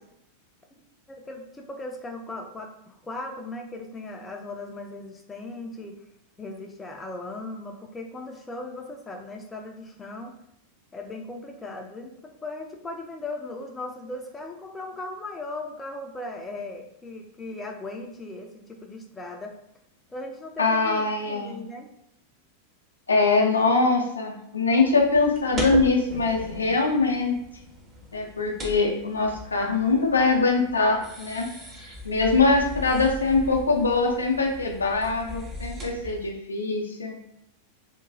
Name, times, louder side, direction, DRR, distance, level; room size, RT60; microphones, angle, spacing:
voice 1, 1.2-5.9 6.4-10.3 10.9-19.5 20.1-21.9, left 2 dB, 15° left, 2 dB, 0.4 m, -38 dB
voice 2, 20.6-21.6 23.1-27.4 28.1-31.5 32.0-37.2, left 3 dB, 75° left, 1 dB, 0.5 m, -23 dB
sound 1, 24.9-36.3, equal, 20° right, 0.7 m, -38 dB
2.9 x 2.2 x 2.6 m, 0.79 s
figure-of-eight pair, 90°, 0 cm